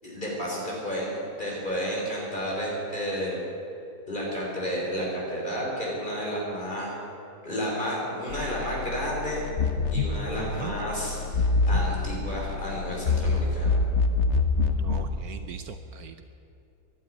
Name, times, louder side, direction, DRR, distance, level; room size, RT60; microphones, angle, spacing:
voice 1, 0.0-1.1 1.4-3.4 4.1-7.0 7.4-9.4 9.9-13.8, equal, 30° left, -4 dB, 4.4 m, -31 dB
sound 1, 8.3-15.1, left 3 dB, 50° left, 1.1 m, -26 dB
voice 2, 10.4-10.8 14.8-16.2, right 9 dB, 70° right, 9 dB, 1.1 m, -39 dB
12.0 x 11.5 x 9.8 m, 2.8 s
omnidirectional pair, 1.8 m